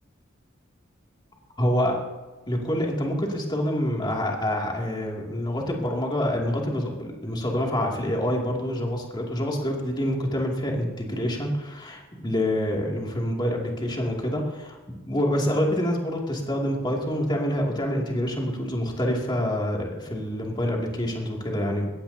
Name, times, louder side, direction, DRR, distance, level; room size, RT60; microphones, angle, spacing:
voice 1, 1.6-2.0 2.5-14.8 15.0-21.9, equal, 25° left, -1 dB, 2.6 m, -26 dB
20.5 x 16.5 x 2.9 m, 1.3 s
head